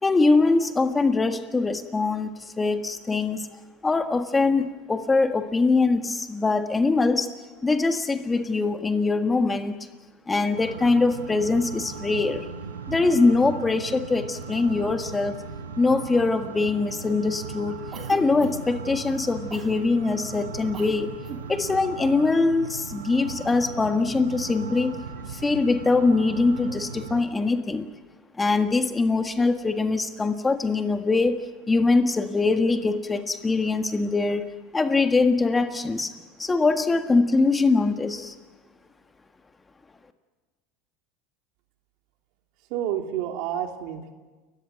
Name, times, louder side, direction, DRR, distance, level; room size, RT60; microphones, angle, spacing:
voice 1, 0.0-3.5 3.8-7.3 7.6-9.8 10.3-12.5 12.9-15.4 15.8-17.8 18.1-21.1 21.5-25.0 25.3-27.9 28.3-36.1 36.4-38.3, left 3 dB, 15° left, 9 dB, 1.6 m, -23 dB
sound 1, 10.6-27.2, right 5 dB, 90° right, 1.7 m, -38 dB
Cough, 17.9-18.8 19.5-19.8 20.7-21.0 21.2-21.5, right 5 dB, 35° right, 3.6 m, -39 dB
voice 2, 42.7-44.1, right 10 dB, 60° right, 5 dB, 2.7 m, -29 dB
30.0 x 14.5 x 9.4 m, 1.3 s
hypercardioid pair, 85°, 0 cm